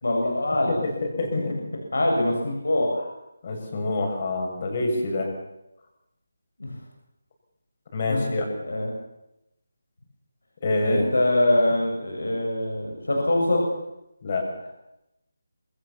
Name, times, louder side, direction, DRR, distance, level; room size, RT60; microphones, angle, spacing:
voice 1, 0.0-0.8 1.3-1.4 1.9-3.1 6.6-6.8 8.0-8.3 8.6-8.9 10.8-13.6, left 1 dB, 85° left, 1 dB, 7.1 m, -23 dB
voice 2, 1.2-1.6 3.4-5.3 7.9-8.5 10.6-11.1 14.2-14.7, left 2 dB, 35° left, 2 dB, 6.9 m, -26 dB
27.0 x 20.0 x 7.2 m, 0.87 s
figure-of-eight pair, 165°, 0 cm